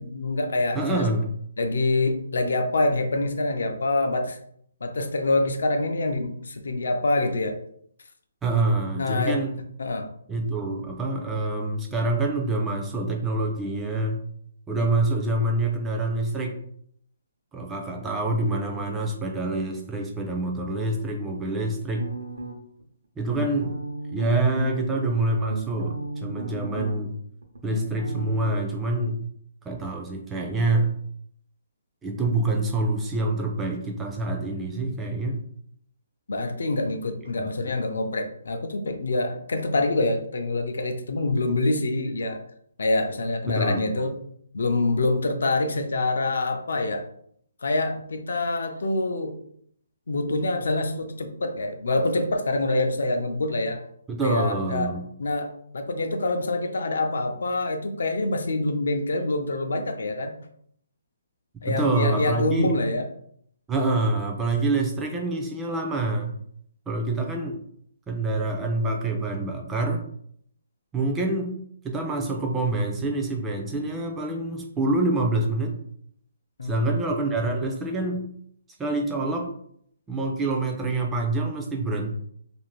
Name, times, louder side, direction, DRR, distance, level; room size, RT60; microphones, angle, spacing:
voice 1, 0.0-1.0 1.6-4.4 4.8-7.6 9.0-9.4 9.8-10.1 36.3-42.4 42.8-44.2 44.5-47.1 47.6-49.4 50.1-53.8 54.2-54.9 55.2-60.3 61.6-63.1 76.6-76.9, left 2 dB, 75° left, 6 dB, 0.5 m, -26 dB
voice 2, 0.8-1.3 8.4-9.5 10.3-14.2 14.7-16.6 17.5-22.1 23.2-23.7 24.1-27.2 27.6-29.2 29.7-31.0 32.0-35.4 37.4-37.7 43.5-43.9 54.1-55.1 61.7-62.7 63.7-66.4 66.9-67.6 68.1-70.1 70.9-71.6 71.8-75.8 76.6-78.3 78.8-79.5 80.1-82.1, right 2 dB, 10° right, 1 dB, 0.3 m, -26 dB
sound 1, 22.0-22.8 23.3-24.8 25.2-27.2 27.4-28.5, right 2 dB, 85° right, 0.7 m, -35 dB
2.5 x 2.5 x 3.0 m, 0.66 s
hypercardioid pair, 170°, 0 cm